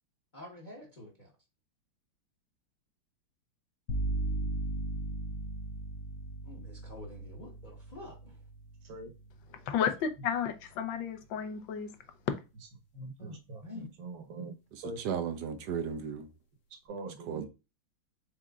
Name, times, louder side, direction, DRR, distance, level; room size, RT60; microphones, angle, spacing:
voice 1, 0.3-1.3 6.4-8.4 13.2-13.9, left 1 dB, 30° left, 0.9 m, -47 dB
sound 1, 3.9-11.6, right 2 dB, 90° left, 1.7 m, -38 dB
voice 2, 9.7-11.9, left 7 dB, 70° left, 1.4 m, -32 dB
voice 3, 12.9-14.5 14.8-15.0 16.8-17.5, right 2 dB, 55° right, 1.3 m, -43 dB
voice 4, 14.7-16.3 17.3-17.4, right 7 dB, 75° right, 0.9 m, -35 dB
4.9 x 4.1 x 2.4 m
omnidirectional pair, 2.3 m